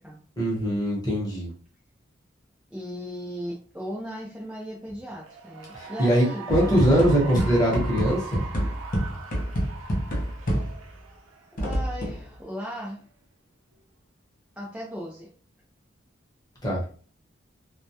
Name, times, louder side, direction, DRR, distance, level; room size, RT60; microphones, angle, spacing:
voice 1, 0.4-1.5 5.7-8.4 16.6-16.8, equal, 20° left, -5 dB, 0.9 m, -22 dB
voice 2, 2.7-7.7 11.6-13.1 14.6-15.3, equal, 5° right, -5 dB, 0.4 m, -37 dB
Cheering / Applause, 5.1-11.8, right 4 dB, 90° right, 0.5 m, -41 dB
sound 1, 6.5-11.0 11.6-12.3, equal, 45° left, 0.6 m, -28 dB
2.2 x 2.1 x 2.7 m, 0.42 s
head